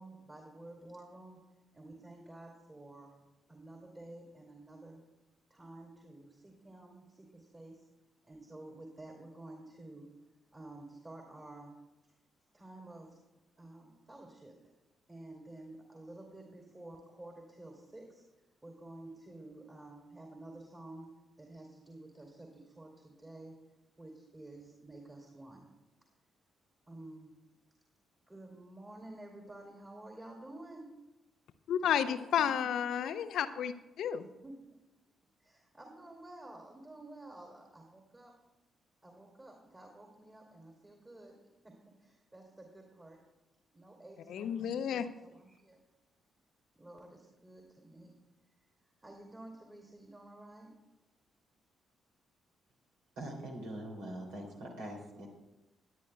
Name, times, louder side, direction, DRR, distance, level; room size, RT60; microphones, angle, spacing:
voice 1, 0.0-1.4 1.7-3.2 3.5-5.0 5.5-7.9 8.2-10.1 10.5-11.8 12.5-13.2 13.6-14.6 15.1-18.2 18.6-23.6 24.0-25.7 26.9-27.4 28.3-31.0 31.8-32.7 34.2-34.6 35.4-38.3 39.0-43.2 43.7-45.8 46.7-48.2 49.0-50.8, right 2 dB, 25° right, 2.8 m, -51 dB
voice 2, 31.7-34.2 44.3-45.1, left 9 dB, 60° left, 0.6 m, -32 dB
voice 3, 53.2-55.3, right 1 dB, 65° right, 2.8 m, -43 dB
19.0 x 10.5 x 2.3 m
figure-of-eight pair, 40°, 0 cm